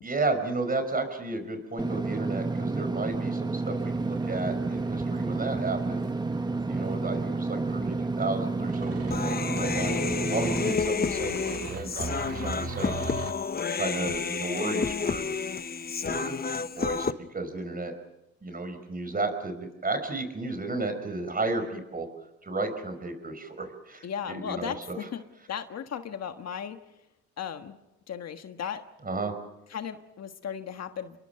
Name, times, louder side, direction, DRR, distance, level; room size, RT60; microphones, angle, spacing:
voice 1, 0.0-6.1 6.7-13.0 13.8-15.3 16.0-16.4 16.8-17.9 18.4-22.1 22.4-25.0 29.0-29.3, right 3 dB, 30° right, 8 dB, 5.2 m, -33 dB
Engine / Mechanisms, 1.8-10.7, right 3 dB, 15° right, 0.9 m, -30 dB
sound 1, 3.8-13.3, right 6 dB, 55° right, 1.9 m, -42 dB
Human voice, 9.1-17.1, left 5 dB, 30° left, 1.0 m, -30 dB
voice 2, 24.0-25.2 25.5-26.8 27.4-27.8 28.1-28.8 29.7-31.2, left 8 dB, 60° left, 8 dB, 1.5 m, -36 dB
29.0 x 22.5 x 5.9 m, 0.94 s
cardioid pair, 90°, 30 cm